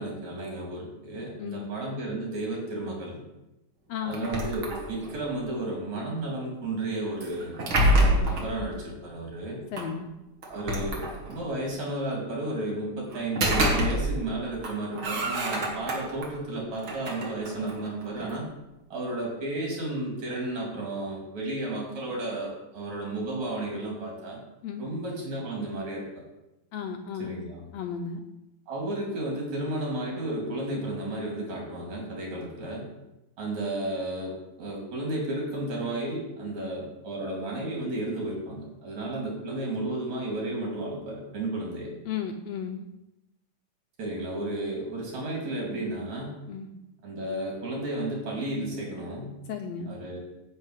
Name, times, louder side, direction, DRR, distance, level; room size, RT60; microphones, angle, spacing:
voice 1, 0.0-3.2 4.0-7.6 7.9-9.6 10.5-18.4 18.9-24.4 24.8-26.2 27.2-27.7 28.7-32.8 33.4-41.9 44.0-46.3 47.0-49.4 49.9-50.2, right 2 dB, 70° right, -2 dB, 4.2 m, -33 dB
voice 2, 1.4-1.7 3.9-4.3 9.7-10.1 24.6-24.9 26.7-27.4 27.7-28.2 42.0-42.8 46.5-46.7 49.5-49.9, left 7 dB, 75° left, 5 dB, 1.6 m, -34 dB
sound 1, 4.1-5.2 7.2-8.5 9.8-9.9 10.4-11.5 13.1-14.3 14.6-16.3 16.8-18.4, right 1 dB, 45° right, 2.3 m, -27 dB
10.0 x 4.9 x 8.1 m, 0.95 s
omnidirectional pair, 3.4 m